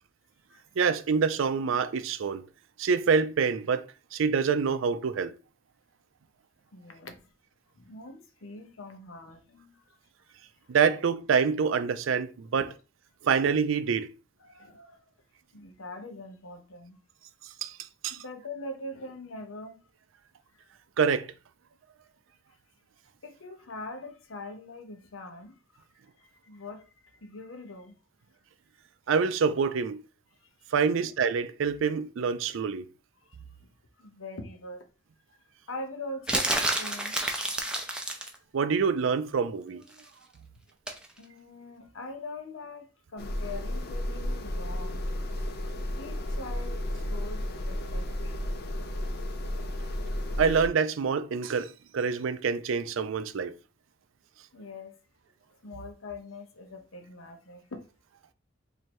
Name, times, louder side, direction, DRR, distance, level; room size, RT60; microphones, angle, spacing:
voice 1, 0.8-2.4 2.8-3.9 4.1-5.3 10.7-12.7 13.2-14.1 17.6-17.8 18.0-18.2 21.0-21.3 29.1-30.0 30.7-32.8 38.5-39.8 50.4-53.5, right 6 dB, 75° right, 0.4 m, -26 dB
voice 2, 6.7-7.3 7.7-10.0 12.5-12.7 14.4-15.1 15.5-17.0 18.1-19.8 20.5-20.6 23.2-25.9 26.2-28.0 30.4-31.1 33.2-34.9 35.7-37.1 38.3-38.4 41.2-45.3 45.7-48.4 49.0-49.1 49.8-49.9 54.5-55.0 55.6-57.8, left 2 dB, 85° left, 0.8 m, -43 dB
sound 1, 36.3-38.4 40.9-41.1, right 1 dB, 5° right, 0.5 m, -29 dB
sound 2, 43.2-50.7, left 1 dB, 50° left, 0.5 m, -33 dB
3.1 x 2.7 x 4.4 m
head